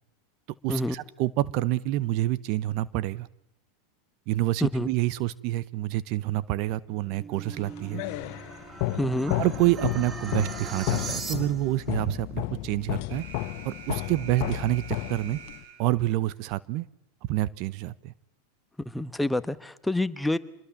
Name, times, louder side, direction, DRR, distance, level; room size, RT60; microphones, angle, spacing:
voice 1, 0.6-3.3 4.3-8.0 9.3-13.2 13.6-15.4 15.8-16.9 17.3-18.1, right 16 dB, 55° right, 19 dB, 0.9 m, -27 dB
sound 1, 6.9-11.8, right 4 dB, 25° right, 2.5 m, -40 dB
sound 2, 7.5-15.6, left 16 dB, 60° left, 1.3 m, -33 dB
voice 2, 9.0-9.3 18.8-20.4, left 1 dB, 5° left, 13 dB, 1.2 m, -27 dB
Alarm, 13.1-16.1, right 6 dB, 75° right, 7.5 m, -46 dB
26.5 x 21.5 x 7.3 m, 0.77 s
hypercardioid pair, 100°, 0 cm